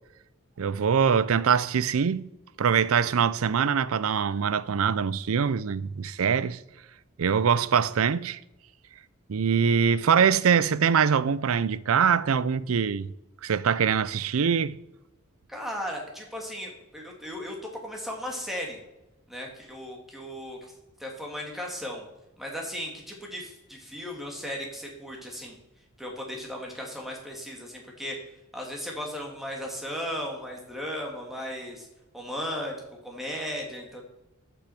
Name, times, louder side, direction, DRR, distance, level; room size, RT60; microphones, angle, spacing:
voice 1, 0.6-2.3 2.6-6.6 7.2-8.4 9.3-13.1 13.4-14.8, right 7 dB, 75° right, 0.5 m, -23 dB
voice 2, 15.5-18.8 19.3-20.7 21.0-22.0 22.4-25.6 26.0-28.2 28.5-31.9 32.1-32.8 33.0-34.0, equal, ahead, 2.2 m, -36 dB
10.0 x 6.2 x 7.7 m
head